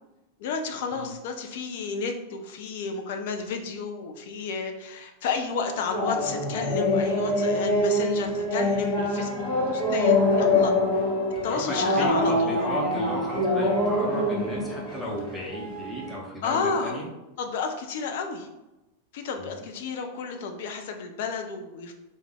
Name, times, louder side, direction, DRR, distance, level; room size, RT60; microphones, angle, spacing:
voice 1, 0.4-10.7 11.4-12.6 16.4-17.1 17.4-18.5 19.1-21.9, left 5 dB, 50° left, 5 dB, 0.4 m, -31 dB
sound 1, 5.9-16.1, left 1 dB, 35° left, 1.0 m, -25 dB
voice 2, 11.5-17.1 19.4-19.6, equal, 10° left, -3 dB, 0.7 m, -34 dB
3.2 x 2.1 x 3.4 m, 0.99 s
figure-of-eight pair, 90°, 0 cm